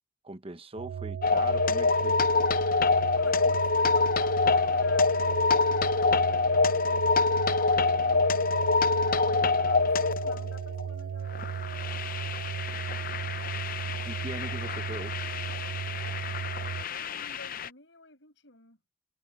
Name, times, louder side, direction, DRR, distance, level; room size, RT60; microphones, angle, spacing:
voice 1, 0.2-2.2 14.0-15.2, right 2 dB, 30° right, 1.0 m, -40 dB
sound 1, 0.8-16.8, right 7 dB, 85° right, 0.3 m, -36 dB
sound 2, 1.2-10.9 11.3-17.7, left 4 dB, 50° left, 0.7 m, -26 dB
voice 2, 3.2-8.7 9.0-12.0 16.5-18.8, left 3 dB, 75° left, 6.9 m, -52 dB
head